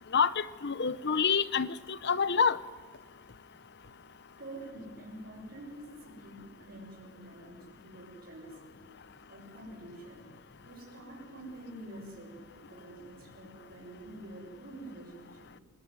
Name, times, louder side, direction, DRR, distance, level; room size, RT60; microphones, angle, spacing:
voice 1, 0.1-2.6, left 6 dB, 50° left, 17 dB, 0.8 m, -27 dB
voice 2, 4.4-8.8 9.3-10.3 10.6-15.6, right 1 dB, 45° right, -6 dB, 6.2 m, -47 dB
25.5 x 20.0 x 9.6 m, 1.6 s
head